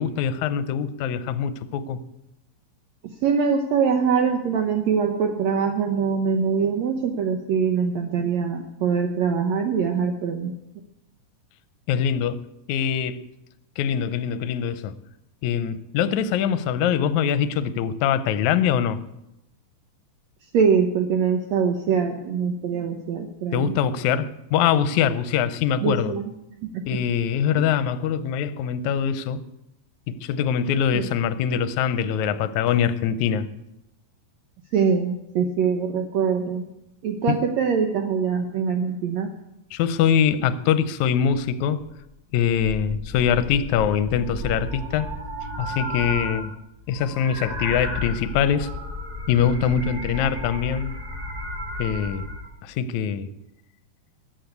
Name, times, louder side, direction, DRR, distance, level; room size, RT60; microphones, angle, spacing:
voice 1, 0.0-2.0 11.9-12.4 12.7-13.2 13.8-14.9 15.4-19.0 23.5-26.2 26.9-29.4 30.1-33.5 37.3-37.4 39.7-41.8 42.3-45.1 45.6-46.6 46.9-48.7 49.3-50.9 51.8-52.3 52.6-53.3, left 8 dB, 75° left, 13 dB, 1.9 m, -23 dB
voice 2, 3.2-10.6 20.5-23.7 25.8-26.3 26.6-27.0 30.9-31.0 34.7-36.7 37.0-39.3, right 6 dB, 65° right, 4 dB, 1.9 m, -23 dB
sound 1, 42.5-46.5 46.8-52.5, left 1 dB, 30° right, 0.7 m, -33 dB
14.0 x 8.6 x 8.1 m, 0.88 s
omnidirectional pair, 3.8 m